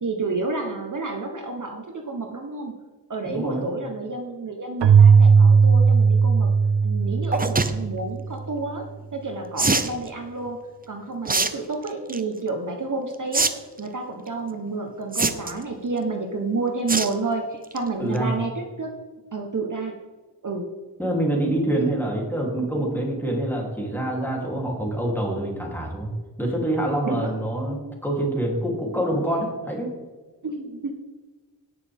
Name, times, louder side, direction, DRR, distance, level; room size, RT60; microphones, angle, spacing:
voice 1, 0.0-2.7 3.1-6.5 6.8-8.8 9.1-10.6 10.9-13.5 13.8-18.9 19.3-19.9 20.4-20.7 21.8-21.9 27.0-27.3 30.4-30.9, right 3 dB, 45° right, 2 dB, 1.2 m, -30 dB
voice 2, 3.3-3.6 18.0-18.3 21.0-26.1 26.4-29.9, right 1 dB, 5° left, -2 dB, 3.2 m, -26 dB
Keyboard (musical), 4.8-8.3, right 5 dB, 75° right, 0.5 m, -17 dB
sound 1, 7.3-7.7 9.6-9.9 11.3-11.5 11.9-12.2 13.3-13.5 13.8-13.9 15.1-15.6 16.9-17.1 17.5-17.8 18.2-18.3 18.4-18.5, right 3 dB, 20° right, 0.7 m, -22 dB
17.5 x 6.6 x 3.6 m, 1.3 s
wide cardioid pair, 105°, 42 cm